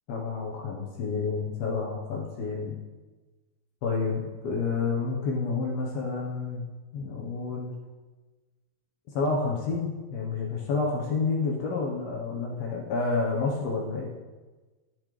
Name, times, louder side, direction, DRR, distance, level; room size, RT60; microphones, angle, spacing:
voice 1, 0.1-2.8 3.8-6.7 6.9-7.7 9.1-14.1, left 4 dB, 65° left, -1 dB, 2.5 m, -29 dB
12.0 x 11.5 x 3.3 m, 1.3 s
omnidirectional pair, 5.5 m